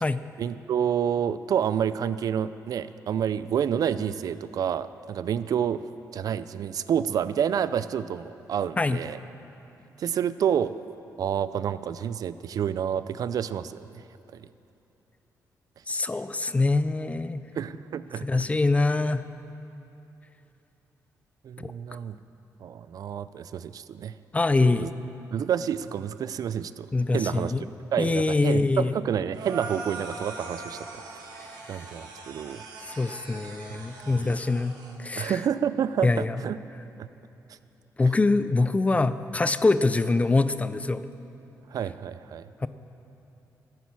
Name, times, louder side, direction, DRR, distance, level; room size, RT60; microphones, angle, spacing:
voice 1, 0.4-9.2 10.0-10.7 11.2-13.9 14.3-14.4 15.9-16.0 17.6-18.5 21.4-22.2 22.6-24.1 24.6-24.9 25.3-26.9 27.1-27.5 27.9-30.9 31.7-32.6 33.7-33.8 34.2-34.4 35.2-36.6 37.0-37.1 41.7-42.5, right 8 dB, 60° right, 15 dB, 0.4 m, -29 dB
voice 2, 15.9-17.4 18.2-19.2 21.6-21.7 24.3-24.9 26.9-27.6 28.0-28.9 31.7-31.9 32.9-35.4 36.0-36.4 38.0-41.1 42.6-42.7, left 3 dB, 20° left, 13 dB, 0.4 m, -24 dB
sound 1, 29.3-35.0, right 3 dB, 85° right, 1.4 m, -41 dB
10.5 x 9.3 x 7.3 m, 3.0 s
cardioid pair, 90°, 7 cm